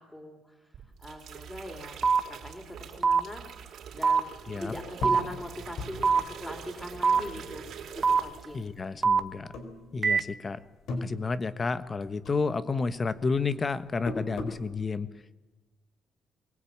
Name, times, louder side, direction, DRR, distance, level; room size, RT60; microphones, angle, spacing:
voice 1, 0.0-3.4 3.9-8.7, left 1 dB, 10° left, 4 dB, 3.9 m, -41 dB
sound 1, 0.7-8.7 9.0-9.4, right 7 dB, 70° right, 4.4 m, -45 dB
sound 2, 2.0-2.2 3.0-3.2 4.0-4.2 5.0-5.2 6.0-6.2 7.0-7.2 8.0-8.2 9.0-9.2 10.0-10.2, right 5 dB, 30° right, 1.1 m, -22 dB
sound 3, 5.0-7.9 8.2-9.0 9.5-10.4 10.7-12.0 12.3-14.7, left 2 dB, 80° left, 4.1 m, -39 dB
voice 2, 8.5-9.5 9.9-10.6 10.9-15.3, left 4 dB, 35° left, 13 dB, 1.3 m, -31 dB
23.0 x 18.5 x 8.8 m, 1.1 s
cardioid pair, 90°, 0 cm